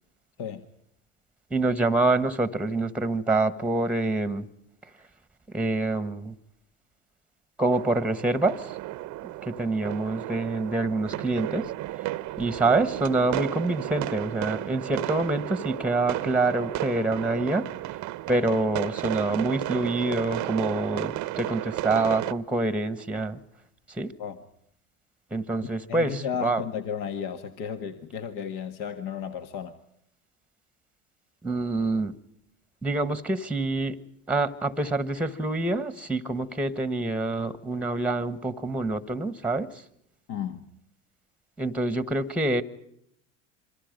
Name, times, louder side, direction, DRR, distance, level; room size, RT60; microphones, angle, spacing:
voice 1, 1.5-4.5 5.5-6.3 7.6-8.8 9.4-11.7 12.4-18.0 18.3-23.4 23.9-24.1 25.3-26.6 31.4-32.1 32.8-34.0 34.3-39.8 41.6-42.6, right 2 dB, 5° right, 14 dB, 1.3 m, -26 dB
sound 1, 7.7-22.3, right 17 dB, 50° right, 0.9 m, -33 dB
voice 2, 25.9-29.8 40.3-40.7, left 7 dB, 55° left, 7 dB, 1.8 m, -33 dB
27.0 x 24.5 x 5.2 m, 0.72 s
hypercardioid pair, 90°, 39 cm